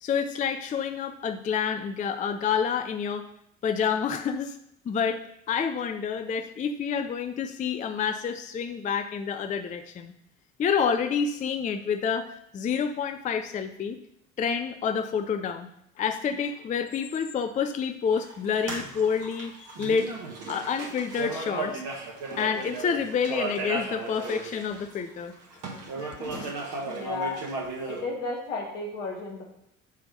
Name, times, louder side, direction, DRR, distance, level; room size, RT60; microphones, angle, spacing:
voice 1, 0.0-3.3 3.6-4.6 4.9-10.1 10.6-14.0 14.4-15.7 16.0-20.1 20.5-21.8 22.4-25.3 26.0-26.5, left 6 dB, 20° left, 8 dB, 0.5 m, -28 dB
sound 1, 18.1-25.0 25.4-28.0, right 3 dB, 55° right, 1.7 m, -35 dB
voice 2, 26.2-26.5 26.8-27.4 27.9-29.4, left 3 dB, 70° left, -2 dB, 2.0 m, -33 dB
10.0 x 3.4 x 5.4 m, 0.77 s
figure-of-eight pair, 60°, 38 cm